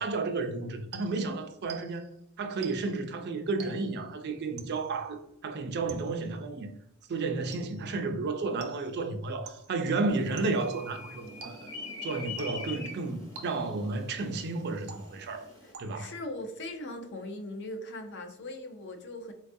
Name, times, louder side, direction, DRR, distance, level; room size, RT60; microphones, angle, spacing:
voice 1, 0.0-2.1 2.4-6.7 7.1-11.7 12.0-15.5 15.8-16.1, right 3 dB, 50° right, 0.4 m, -32 dB
sound 1, 0.9-2.2 2.6-3.1 3.6-4.1 4.6-5.0 5.9-6.4 7.5-8.0 8.6-9.1 9.5-9.9 10.4-10.8 11.4-11.9 12.4-12.8 13.4-13.9 14.9-15.4 15.7-16.2, right 4 dB, 90° right, 0.6 m, -48 dB
sound 2, 10.1-15.7, left 3 dB, 15° left, 0.7 m, -44 dB
voice 2, 15.6-19.3, left 1 dB, 50° left, 0.5 m, -40 dB
4.1 x 2.3 x 2.6 m
head